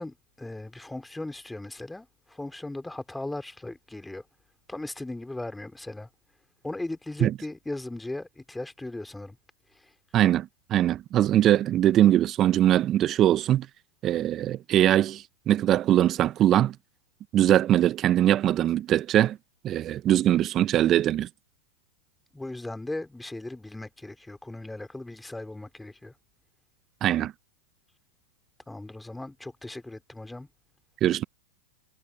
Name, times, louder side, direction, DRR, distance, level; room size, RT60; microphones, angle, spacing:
voice 1, 0.0-4.2 4.7-6.1 6.6-9.4 22.3-26.1 28.7-30.5, left 2 dB, 5° left, 2.8 m, -37 dB
voice 2, 10.1-13.7 14.0-16.7 17.3-19.4 19.6-21.3 27.0-27.3 31.0-31.2, right 12 dB, 35° right, 0.6 m, -22 dB
hypercardioid pair, 100°, 0 cm